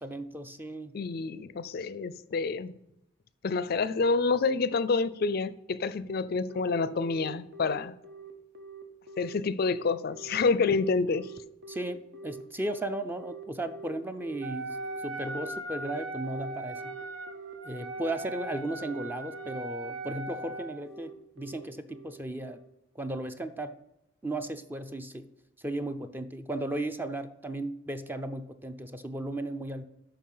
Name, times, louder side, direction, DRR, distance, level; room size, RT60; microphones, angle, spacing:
voice 1, 0.0-1.0 11.7-14.8 15.0-17.0 17.6-22.6 23.0-23.8 24.2-25.3 25.6-29.8, right 1 dB, 10° right, 0.5 m, -35 dB
voice 2, 0.9-2.7 3.4-8.0 9.2-11.3, left 4 dB, 50° left, 0.4 m, -28 dB
Telephone, 6.5-22.7, right 4 dB, 60° right, 1.2 m, -45 dB
Wind instrument woodwind instrument, 14.4-20.9, right 2 dB, 80° right, 0.9 m, -39 dB
8.5 x 5.8 x 5.6 m
head